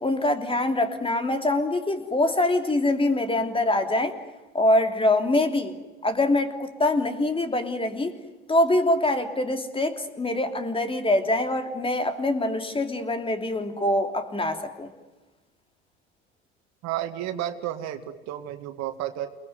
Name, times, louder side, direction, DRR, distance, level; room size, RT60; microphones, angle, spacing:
voice 1, 0.0-4.1 4.5-5.7 6.0-8.1 8.5-14.9, left 1 dB, 15° left, 7 dB, 3.2 m, -24 dB
voice 2, 16.8-19.3, right 12 dB, 55° right, 8 dB, 2.2 m, -32 dB
29.0 x 20.5 x 9.5 m, 1.2 s
figure-of-eight pair, 65°, 32 cm